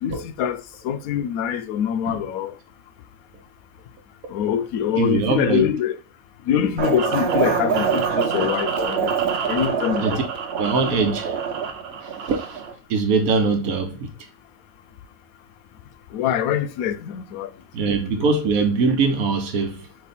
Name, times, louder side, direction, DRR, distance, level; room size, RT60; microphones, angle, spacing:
voice 1, 0.0-2.5 4.3-5.9 6.5-9.1 9.5-10.2 16.1-17.5, left 9 dB, 90° left, 1.0 m, -24 dB
voice 2, 4.9-5.7 10.0-10.2 10.5-11.4 12.0-12.6 12.9-14.1 17.7-19.9, right 4 dB, 80° right, 1.3 m, -22 dB
sound 1, 6.8-12.7, right 6 dB, 55° right, 0.9 m, -25 dB
4.3 x 2.8 x 4.1 m
omnidirectional pair, 1.4 m